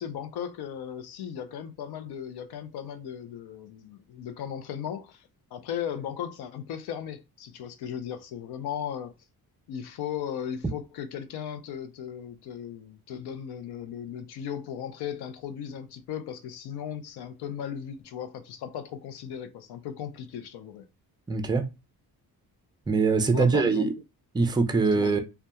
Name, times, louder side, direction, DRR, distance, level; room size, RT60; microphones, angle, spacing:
voice 1, 0.0-9.1 9.7-20.8 23.3-23.9 24.8-25.2, left 9 dB, 90° left, 0.5 m, -36 dB
voice 2, 21.3-21.7 22.9-23.9 24.3-25.2, right 4 dB, 10° right, 0.3 m, -23 dB
2.8 x 2.2 x 2.2 m
cardioid pair, 110°, 37 cm